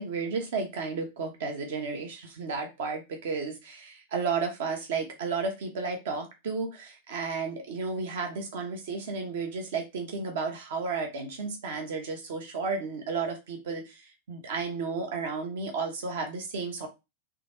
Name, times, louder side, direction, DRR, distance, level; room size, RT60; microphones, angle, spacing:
voice 1, 0.0-16.9, right 4 dB, 55° right, 4 dB, 1.3 m, -33 dB
3.8 x 3.5 x 3.5 m, 0.24 s
figure-of-eight pair, 90°, 0 cm